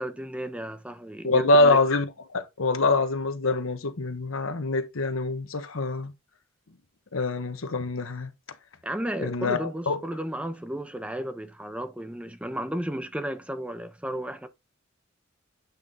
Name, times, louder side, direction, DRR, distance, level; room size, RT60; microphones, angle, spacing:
voice 1, 0.0-1.8 8.8-14.5, right 1 dB, 5° right, 0.5 m, -33 dB
voice 2, 1.2-6.1 7.1-8.3 9.2-10.0, left 2 dB, 75° left, 1.0 m, -25 dB
8.2 x 3.6 x 4.0 m
head